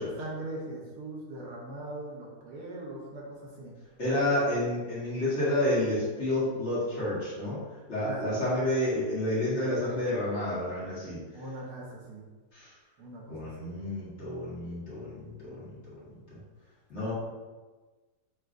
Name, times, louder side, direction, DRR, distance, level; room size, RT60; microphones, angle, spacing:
voice 1, 0.0-3.7 8.0-8.4 11.3-12.3 13.0-13.7 17.0-17.1, right 1 dB, 75° right, -3 dB, 1.4 m, -41 dB
voice 2, 4.0-7.6 7.9-11.2 12.5-12.7 13.3-15.6 16.9-17.1, left 1 dB, 45° left, -9 dB, 1.5 m, -29 dB
6.1 x 2.3 x 2.5 m, 1.3 s
omnidirectional pair, 1.7 m